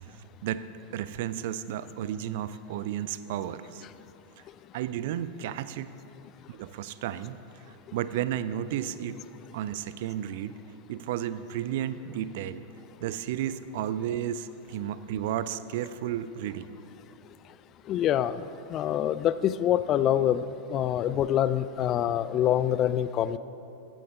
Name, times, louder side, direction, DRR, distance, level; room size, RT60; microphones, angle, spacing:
voice 1, 0.1-0.7 0.9-3.8 4.7-5.9 6.5-7.4 7.7-9.2 9.5-10.6 10.9-12.6 13.0-16.7, right 10 dB, 50° right, 14 dB, 0.4 m, -33 dB
voice 2, 17.9-23.4, left 11 dB, 35° left, 15 dB, 0.3 m, -26 dB
15.5 x 9.0 x 3.8 m, 2.8 s
figure-of-eight pair, 90°, 0 cm